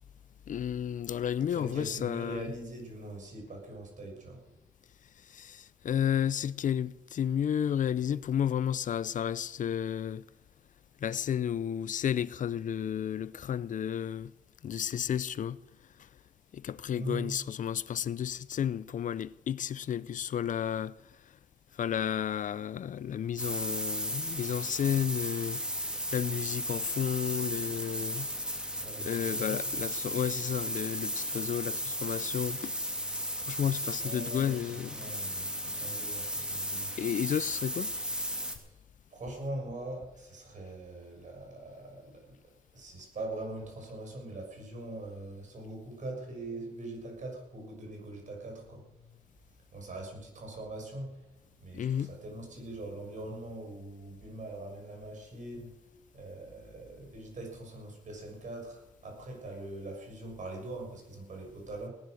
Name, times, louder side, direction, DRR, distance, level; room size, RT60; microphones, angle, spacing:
voice 1, 0.5-2.5 5.3-10.2 11.0-14.3 14.6-15.6 16.5-20.9 21.8-28.3 29.1-32.7 33.5-35.0 37.0-37.9 51.7-52.1, left 9 dB, 65° left, 0.6 m, -32 dB
voice 2, 1.5-4.4 16.9-17.3 28.8-29.6 34.0-37.0 38.6-38.7 39.1-42.4 42.7-49.2 49.7-51.2 51.6-55.7 56.1-61.9, right 2 dB, 65° right, 6.6 m, -42 dB
sound 1, 23.4-38.6, equal, 5° right, 2.9 m, -35 dB
18.5 x 11.0 x 6.5 m
cardioid pair, 80°, 14 cm